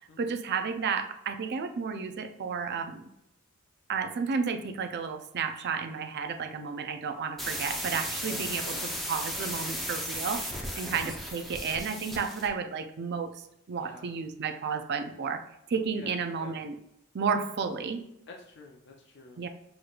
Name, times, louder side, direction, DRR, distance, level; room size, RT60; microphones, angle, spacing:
voice 1, 0.2-3.0 3.9-10.4 10.8-13.3 13.7-16.7 17.1-18.0 19.4-19.5, right 5 dB, 50° right, 7 dB, 0.5 m, -32 dB
sound 1, 7.4-12.5, equal, ahead, 0.7 m, -35 dB
voice 2, 8.2-8.9 10.7-10.9 11.3-11.5 13.8-14.0 15.7-16.6 18.3-19.4, left 2 dB, 55° left, 0 dB, 0.6 m, -49 dB
6.2 x 3.1 x 2.4 m, 0.83 s
head